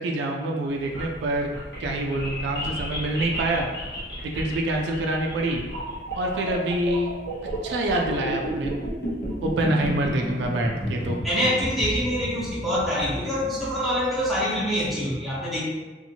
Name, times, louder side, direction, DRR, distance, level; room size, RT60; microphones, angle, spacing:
voice 1, 0.0-1.5 1.8-3.7 4.3-5.6 6.2-7.1 7.6-8.7 9.4-11.2, right 1 dB, 70° right, 1 dB, 0.3 m, -26 dB
sound 1, 0.7-14.8, equal, 65° left, 1.0 m, -32 dB
voice 2, 11.2-15.6, equal, ahead, -9 dB, 0.8 m, -25 dB
2.7 x 2.5 x 2.7 m, 1.3 s
head